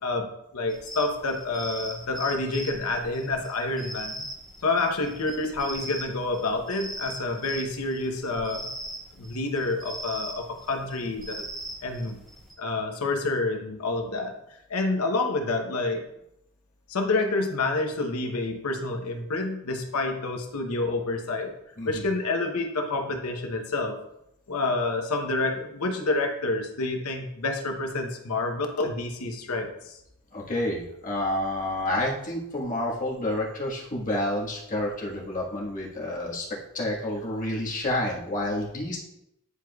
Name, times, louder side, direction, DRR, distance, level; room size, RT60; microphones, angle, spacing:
voice 1, 0.0-4.2 4.6-8.7 9.2-11.2 11.8-12.2 12.6-14.3 14.7-16.0 16.9-21.5 21.8-24.0 24.5-30.0, left 2 dB, 75° left, 4 dB, 0.9 m, -28 dB
sound 1, 0.7-12.5, right 1 dB, ahead, 1.8 m, -40 dB
voice 2, 30.3-39.0, left 1 dB, 35° left, -3 dB, 1.5 m, -29 dB
9.8 x 4.7 x 2.3 m, 0.82 s
head